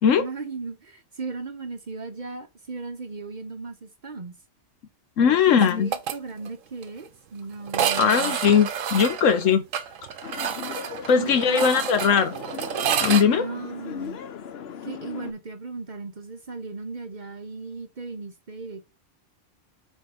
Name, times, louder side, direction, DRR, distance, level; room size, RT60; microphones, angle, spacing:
voice 1, 0.2-4.4 5.2-8.4 11.1-12.0 13.3-14.2 14.8-18.9, right 3 dB, 45° right, 0.7 m, -37 dB
voice 2, 5.2-5.9 8.0-9.6 11.1-12.3 13.0-13.4, left 7 dB, 80° left, 1.2 m, -19 dB
sound 1, 5.6-6.2 6.5-6.6 6.8-6.9 7.7-13.2, right 8 dB, 90° right, 1.1 m, -29 dB
sound 2, 10.2-15.3, left 8 dB, 60° left, 0.9 m, -38 dB
4.6 x 4.4 x 4.9 m
omnidirectional pair, 1.3 m